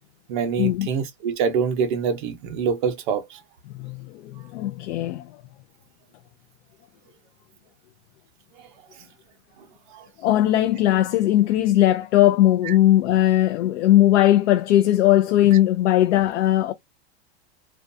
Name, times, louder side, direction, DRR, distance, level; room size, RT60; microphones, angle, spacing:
voice 1, 0.3-3.4 9.9-10.1 12.7-12.8, right 6 dB, 45° right, 0.6 m, -25 dB
voice 2, 3.8-5.3 10.2-16.7, left 13 dB, 85° left, 0.5 m, -19 dB
2.4 x 2.3 x 2.5 m
supercardioid pair, 175°, 34 cm